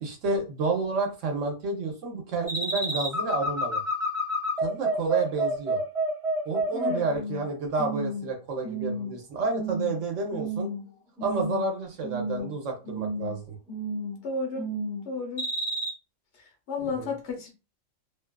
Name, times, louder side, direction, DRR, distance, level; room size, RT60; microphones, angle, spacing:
voice 1, 0.0-3.8 4.6-5.8 6.4-10.7 11.2-13.5 17.0-17.1, right 3 dB, 70° right, 1.1 m, -30 dB
sound 1, 2.5-7.4 7.8-8.3 8.6-9.1 9.5-9.9 10.3-10.9 11.2-11.7 12.0-12.5 12.8-13.3 13.7-14.2 14.6-15.0 15.4-15.9, right 1 dB, 5° right, 0.8 m, -30 dB
voice 2, 6.7-7.1 14.2-14.7 15.0-15.5 16.7-17.5, left 4 dB, 60° left, 1.0 m, -32 dB
2.7 x 2.3 x 2.2 m
omnidirectional pair, 1.4 m